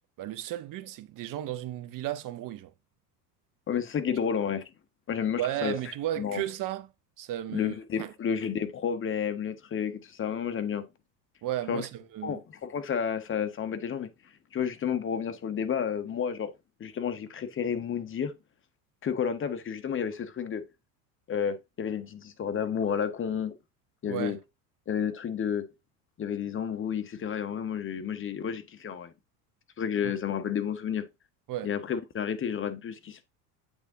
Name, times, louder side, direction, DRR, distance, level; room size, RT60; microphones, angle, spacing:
voice 1, 0.2-2.7 5.4-6.9 7.2-8.1 11.4-12.4 24.1-24.4 30.0-30.1 31.5-31.7, right 13 dB, 40° right, 0.8 m, -34 dB
voice 2, 3.7-4.7 5.1-6.4 7.5-10.8 11.7-11.8 12.2-14.1 14.5-16.5 16.8-18.3 19.0-20.6 21.3-23.6 24.0-24.4 24.9-25.7 26.2-29.1 29.8-31.0 31.6-33.2, left 7 dB, 25° left, 0.9 m, -31 dB
8.1 x 3.6 x 3.6 m
hypercardioid pair, 80°, 48 cm